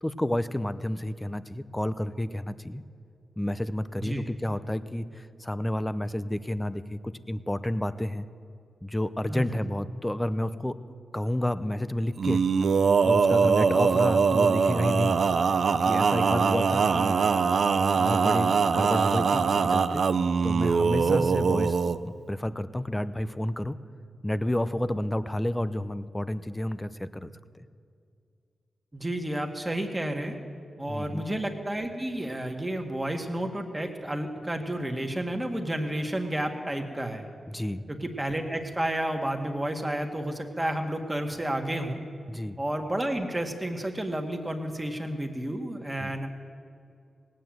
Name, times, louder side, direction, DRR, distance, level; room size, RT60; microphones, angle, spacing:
voice 1, 0.0-2.8 3.4-8.3 8.8-10.8 11.1-12.4 13.0-15.2 15.8-17.2 17.9-20.0 20.4-21.8 22.0-23.8 24.2-27.3 30.9-31.2 37.5-37.8 42.3-42.6 46.0-46.1, left 1 dB, 15° left, 14 dB, 0.7 m, -30 dB
Male singing, 12.2-22.0, right 5 dB, 70° right, 0.5 m, -23 dB
voice 2, 28.9-30.3 30.8-37.3 37.9-42.0 42.6-46.3, right 1 dB, 15° right, 3 dB, 1.8 m, -31 dB
18.0 x 9.1 x 7.8 m, 2.4 s
cardioid pair, 50°, 0 cm